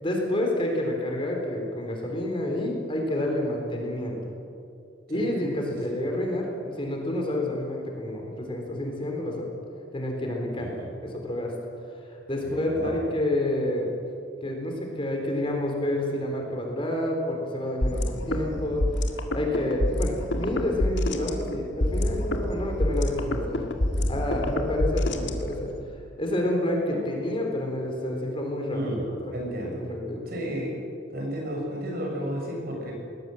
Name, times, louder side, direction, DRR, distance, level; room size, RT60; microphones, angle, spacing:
voice 1, 0.0-4.3 5.1-9.5 9.9-10.7 11.0-11.5 12.3-13.9 14.4-18.9 19.3-23.6 24.1-25.7 26.2-29.0 29.2-29.3 29.7-30.2, left 1 dB, 30° left, 1 dB, 3.6 m, -29 dB
voice 2, 12.4-12.9 26.9-27.0 28.7-29.1 29.3-29.8 30.3-30.8 31.1-32.9, equal, 55° right, 0 dB, 6.3 m, -32 dB
sound 1, 17.8-25.8, left 1 dB, 75° left, 2.0 m, -27 dB
20.5 x 19.5 x 7.7 m, 2.5 s
head